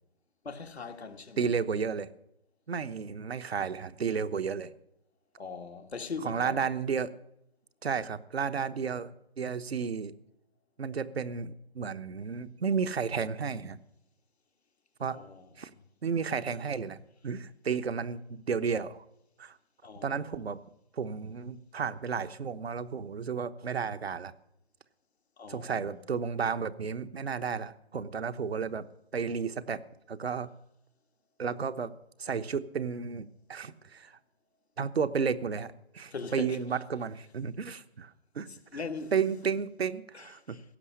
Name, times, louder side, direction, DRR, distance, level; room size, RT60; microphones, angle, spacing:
voice 1, 0.4-1.5 5.4-6.6 15.1-15.5 19.8-20.3 25.4-25.9 36.1-36.6 38.7-39.1 40.1-40.6, left 4 dB, 80° left, 1.7 m, -40 dB
voice 2, 1.4-2.1 2.7-4.7 6.2-7.1 7.8-9.1 9.4-10.1 10.8-13.8 15.0-15.2 15.6-15.7 16.0-17.0 17.2-19.0 19.4-19.6 20.0-20.6 20.9-24.3 25.5-28.9 29.1-29.8 30.1-30.5 31.4-31.9 32.2-34.2 34.8-38.5 39.1-40.6, right 6 dB, 75° right, 1.0 m, -32 dB
16.5 x 6.2 x 9.9 m
figure-of-eight pair, 140°, 32 cm